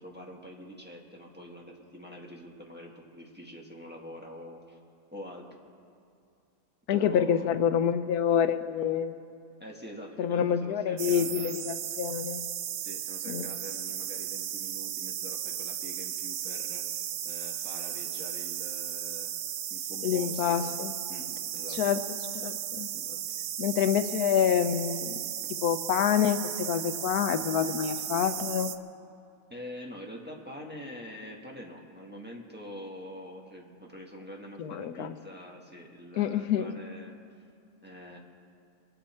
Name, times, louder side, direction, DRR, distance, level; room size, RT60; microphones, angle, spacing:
voice 1, 0.0-4.8 5.1-5.5 6.9-7.5 9.6-11.6 12.8-16.8 17.2-19.3 19.7-20.7 21.1-21.8 22.9-23.2 29.5-37.2 37.8-38.2, equal, 5° right, -1 dB, 1.4 m, -45 dB
voice 2, 6.9-9.1 10.2-12.5 13.3-13.5 20.0-20.9 21.7-22.9 23.6-25.3 25.6-28.7 34.6-35.2 36.2-36.7, left 8 dB, 85° left, 10 dB, 1.2 m, -27 dB
sound 1, 11.0-28.8, right 10 dB, 70° right, 1.0 m, -35 dB
24.0 x 9.6 x 4.4 m, 2.5 s
omnidirectional pair, 1.6 m